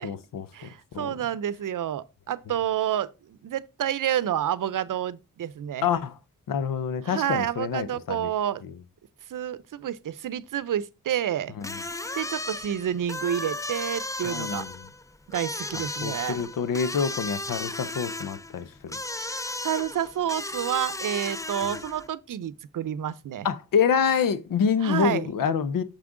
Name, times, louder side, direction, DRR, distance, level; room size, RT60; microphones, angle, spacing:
voice 1, 0.0-0.5 0.9-1.2 5.8-6.1 6.5-8.3 11.6-11.7 14.2-14.9 15.7-19.0 21.6-21.7 23.4-25.8, left 7 dB, 85° left, 0.8 m, -27 dB
voice 2, 0.5-3.1 3.4-5.9 7.0-8.6 9.3-11.5 12.1-14.7 15.3-16.4 19.6-23.5 24.8-25.3, right 10 dB, 70° right, 0.6 m, -29 dB
sound 1, 11.6-22.1, left 2 dB, 10° left, 0.5 m, -35 dB
6.7 x 6.0 x 3.7 m
cardioid pair, 75°, 32 cm